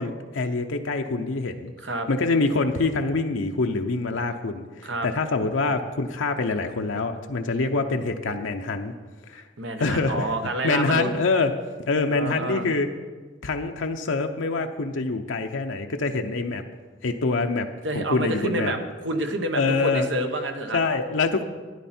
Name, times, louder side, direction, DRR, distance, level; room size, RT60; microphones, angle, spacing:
voice 1, 0.0-1.7 2.1-8.9 9.3-9.5 9.8-10.3 10.6-11.5 11.9-12.9 13.4-16.6 17.0-17.7 17.9-18.7 19.5-20.1 20.7-21.4, left 3 dB, 90° left, 4 dB, 0.7 m, -25 dB
voice 2, 9.6-11.1 12.1-12.7 17.8-20.8, right 1 dB, 70° right, 5 dB, 1.1 m, -28 dB
12.5 x 10.0 x 4.3 m, 1.4 s
head